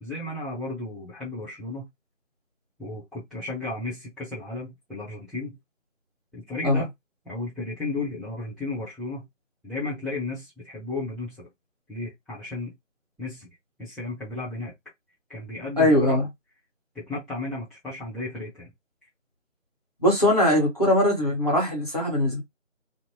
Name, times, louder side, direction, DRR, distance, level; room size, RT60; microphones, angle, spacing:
voice 1, 0.0-1.9 2.8-5.6 6.3-6.9 7.2-9.3 9.6-11.5 11.9-12.7 13.2-13.5 13.8-14.7 15.3-16.2 16.9-18.7, left 2 dB, ahead, 0.6 m, -34 dB
voice 2, 15.8-16.3 20.0-22.4, left 1 dB, 30° left, 1.0 m, -21 dB
2.6 x 2.0 x 2.8 m
figure-of-eight pair, 180°, 38 cm